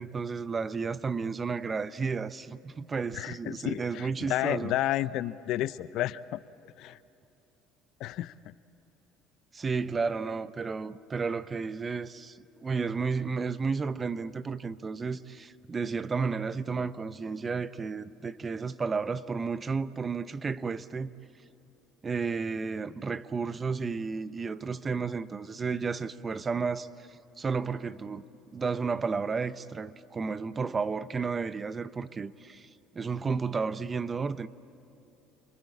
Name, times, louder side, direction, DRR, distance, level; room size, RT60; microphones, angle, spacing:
voice 1, 0.0-4.7 9.5-21.1 22.0-28.2 28.5-32.7 32.9-34.5, right 5 dB, 25° right, 0.8 m, -32 dB
voice 2, 3.1-6.4 6.8-7.0 8.0-8.5, left 14 dB, 65° left, 0.6 m, -31 dB
29.0 x 21.5 x 8.5 m
supercardioid pair, 95°, 0 cm